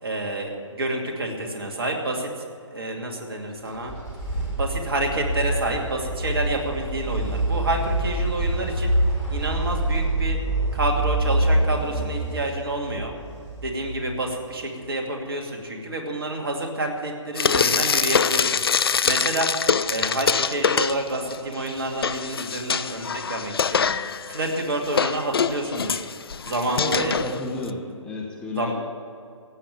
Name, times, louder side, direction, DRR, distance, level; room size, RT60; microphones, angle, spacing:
voice 1, 0.0-2.4 2.7-3.9 4.6-8.9 9.3-10.4 10.7-13.1 13.6-19.5 19.9-23.9 24.3-26.0 26.4-27.1 28.5-28.7, right 2 dB, 45° right, 2 dB, 2.5 m, -28 dB
sound 1, 3.6-14.4, right 1 dB, 10° right, 4.2 m, -26 dB
Frying (food), 17.4-21.4 21.7-27.7, left 6 dB, 50° left, 0.5 m, -24 dB
voice 2, 26.8-28.7, left 2 dB, 5° left, -3 dB, 1.1 m, -31 dB
16.0 x 8.8 x 8.8 m, 2.3 s
figure-of-eight pair, 140°, 16 cm